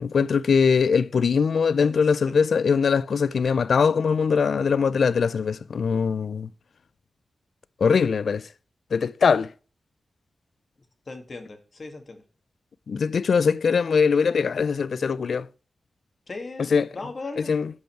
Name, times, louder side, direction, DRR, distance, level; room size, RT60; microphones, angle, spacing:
voice 1, 0.0-6.5 7.8-8.5 8.9-9.5 12.9-15.5 16.7-16.9 17.5-17.7, left 5 dB, 70° left, 0.3 m, -21 dB
voice 2, 11.1-12.2 16.3-17.5, left 3 dB, 45° left, 2.0 m, -37 dB
10.5 x 5.4 x 4.5 m
wide cardioid pair, 115°, 0 cm